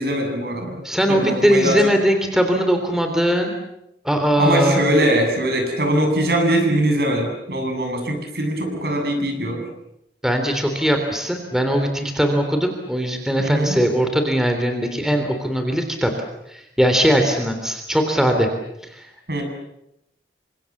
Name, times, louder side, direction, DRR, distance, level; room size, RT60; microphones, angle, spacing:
voice 1, 0.0-0.8 1.1-1.8 4.4-9.7 13.4-13.8 19.3-19.4, right 1 dB, 60° right, 3 dB, 7.9 m, -21 dB
voice 2, 0.8-3.5 4.0-4.8 10.2-16.1 16.5-18.5 18.8-19.1, equal, 5° right, 5 dB, 3.3 m, -20 dB
29.0 x 26.0 x 7.3 m, 0.83 s
head